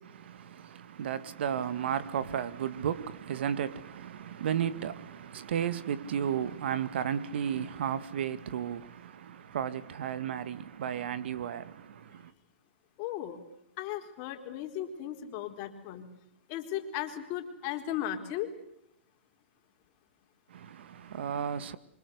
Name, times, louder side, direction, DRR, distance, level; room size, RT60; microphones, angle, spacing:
voice 1, 0.2-12.3 20.5-21.8, right 8 dB, 65° right, 2.0 m, -34 dB
voice 2, 13.0-13.4 13.8-16.1 16.5-18.5, left 11 dB, 35° left, 4.2 m, -36 dB
27.0 x 25.0 x 8.2 m
hypercardioid pair, 145°, 6 cm